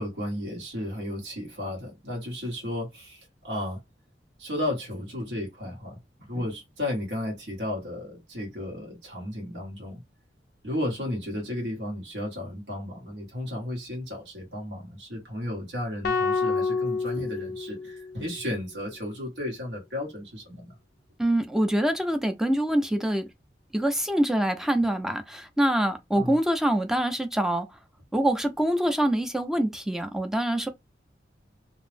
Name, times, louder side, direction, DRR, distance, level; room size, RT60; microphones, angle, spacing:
voice 1, 0.0-3.8 4.4-10.0 10.6-20.8 26.1-26.3, left 1 dB, 75° right, 1.3 m, -34 dB
sound 1, 16.0-18.4, left 4 dB, 60° left, 0.4 m, -28 dB
voice 2, 21.2-23.3 23.7-27.7 28.1-30.7, right 1 dB, 5° right, 0.4 m, -25 dB
2.6 x 2.0 x 3.2 m
head